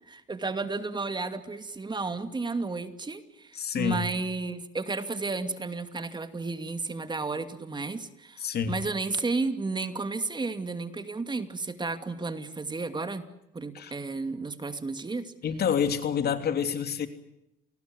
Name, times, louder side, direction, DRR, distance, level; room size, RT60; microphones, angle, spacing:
voice 1, 0.1-13.2 13.5-15.3, right 3 dB, 20° right, 9 dB, 2.6 m, -32 dB
voice 2, 3.5-4.0 8.4-8.8 13.7-13.9 15.4-17.1, left 7 dB, 55° left, 9 dB, 3.0 m, -28 dB
29.0 x 20.5 x 7.9 m, 0.86 s
cardioid pair, 100°, 20 cm